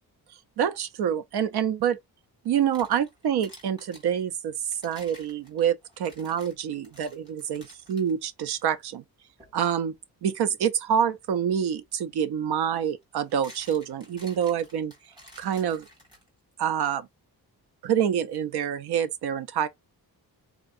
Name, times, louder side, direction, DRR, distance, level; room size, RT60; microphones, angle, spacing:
voice 1, 0.6-2.0 2.4-4.5 4.8-9.0 9.5-9.9 10.2-14.9 15.4-15.8 16.6-17.1 17.8-19.7, right 8 dB, 85° right, 0.6 m, -27 dB
sound 1, 2.4-4.1 4.7-8.1 8.6-8.7 9.4-9.6 11.7-11.8 13.0-16.5, equal, 10° right, 1.6 m, -51 dB
3.7 x 2.7 x 2.5 m
wide cardioid pair, 175°, 38 cm